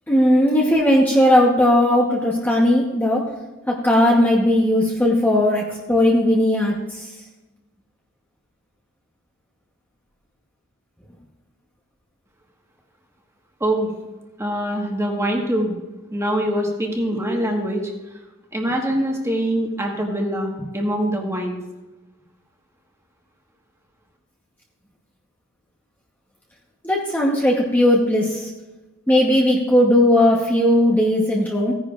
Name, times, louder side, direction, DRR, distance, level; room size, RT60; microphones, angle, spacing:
voice 1, 0.1-3.2 3.7-7.0 26.8-28.5 29.1-31.7, left 1 dB, 10° left, -3 dB, 1.0 m, -17 dB
voice 2, 14.4-15.8 16.1-17.9 18.5-21.6, right 1 dB, 15° right, 1 dB, 1.5 m, -23 dB
16.0 x 10.0 x 2.5 m, 1.1 s
head